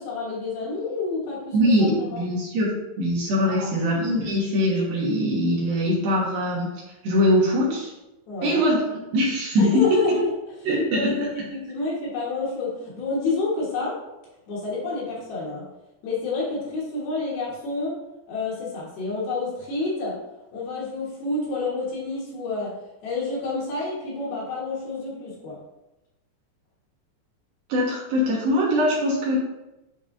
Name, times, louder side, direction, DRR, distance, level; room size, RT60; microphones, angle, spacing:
voice 1, 0.0-2.2 3.4-3.7 8.3-8.6 9.6-10.3 10.7-14.0 14.5-15.6 16.0-18.0 18.3-20.2 20.5-22.7 23.0-25.6, left 3 dB, 65° left, -6 dB, 3.1 m, -29 dB
voice 2, 1.5-2.7 3.0-6.7 7.0-7.9 8.4-8.8 9.1-9.9 10.6-11.1 27.7-29.4, equal, 65° right, -6 dB, 3.0 m, -22 dB
10.0 x 4.0 x 2.6 m, 0.95 s
omnidirectional pair, 5.0 m